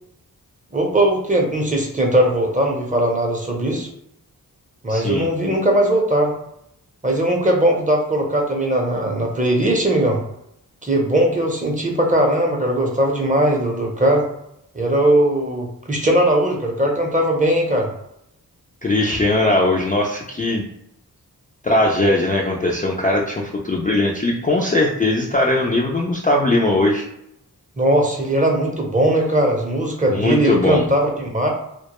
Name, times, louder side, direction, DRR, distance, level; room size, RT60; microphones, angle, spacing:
voice 1, 0.7-3.9 4.8-6.3 7.0-10.2 10.8-14.3 14.7-17.9 27.8-31.5, right 1 dB, 20° right, 0 dB, 0.6 m, -19 dB
voice 2, 4.9-5.3 18.8-20.7 21.6-27.1 30.1-30.8, left 2 dB, 25° left, -2 dB, 0.3 m, -19 dB
2.1 x 2.1 x 2.9 m, 0.79 s
cardioid pair, 50°, 39 cm